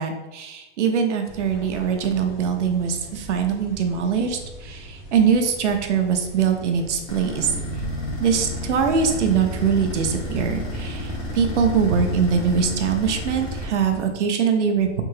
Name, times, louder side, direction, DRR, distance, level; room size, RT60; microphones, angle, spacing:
voice 1, 0.0-7.5 8.2-15.0, right 6 dB, 75° right, 5 dB, 0.7 m, -22 dB
sound 1, 1.2-14.0, equal, 15° left, 0.4 m, -40 dB
sound 2, 7.1-13.6, left 1 dB, 65° left, 1.1 m, -31 dB
3.4 x 2.8 x 3.1 m, 1.0 s
hypercardioid pair, 180°, 35 cm